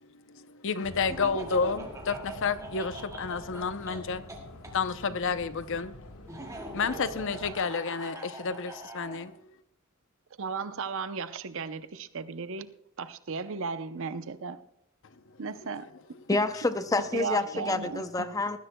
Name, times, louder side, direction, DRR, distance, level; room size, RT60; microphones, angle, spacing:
voice 1, 0.3-4.2 4.7-5.9 6.7-9.3, left 5 dB, 60° left, 0.7 m, -30 dB
sound 1, 0.8-7.5, left 1 dB, 75° left, 1.3 m, -47 dB
Laughter, 1.1-4.7 6.3-9.2, right 1 dB, 15° right, 2.1 m, -42 dB
voice 2, 10.4-12.7 13.0-14.6 15.4-15.8 17.1-18.0, right 5 dB, 65° right, 0.7 m, -35 dB
voice 3, 16.3-18.6, left 2 dB, 15° left, 0.6 m, -28 dB
19.5 x 14.5 x 2.2 m
head